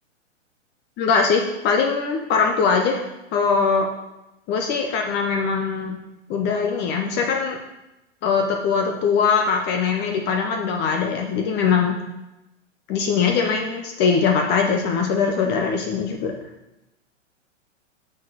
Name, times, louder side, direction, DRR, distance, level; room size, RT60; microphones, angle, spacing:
voice 1, 1.0-3.0 3.3-3.9 4.5-6.0 6.3-7.6 8.2-12.0 12.9-16.3, left 5 dB, 25° left, 2 dB, 0.7 m, -21 dB
6.1 x 4.2 x 6.2 m, 0.96 s
hypercardioid pair, 120°, 38 cm